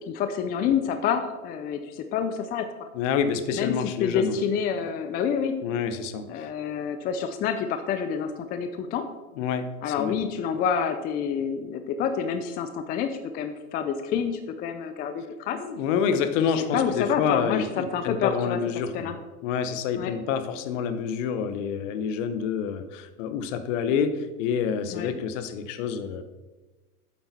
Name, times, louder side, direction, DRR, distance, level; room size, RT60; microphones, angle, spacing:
voice 1, 0.1-2.9 3.5-5.6 6.3-9.1 9.8-15.6 16.7-18.6 18.9-19.2 19.9-20.1 24.9-25.1, left 7 dB, 20° left, 9 dB, 0.4 m, -28 dB
voice 2, 2.9-4.4 5.6-6.3 9.4-10.1 15.5-19.1 19.4-26.2, left 7 dB, 55° left, 10 dB, 1.0 m, -27 dB
8.5 x 7.7 x 4.2 m, 1.2 s
hypercardioid pair, 105°, 46 cm